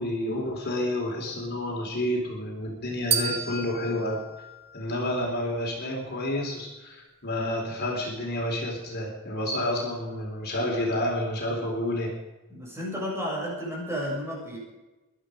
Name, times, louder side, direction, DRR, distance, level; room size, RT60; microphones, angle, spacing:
voice 1, 0.0-4.2 4.7-12.1, left 1 dB, 50° left, -1 dB, 3.9 m, -29 dB
sound 1, 3.1-5.4, right 5 dB, 30° right, 1.6 m, -32 dB
voice 2, 12.5-14.6, equal, 10° right, -4 dB, 6.9 m, -32 dB
20.5 x 12.5 x 5.2 m, 1.1 s
head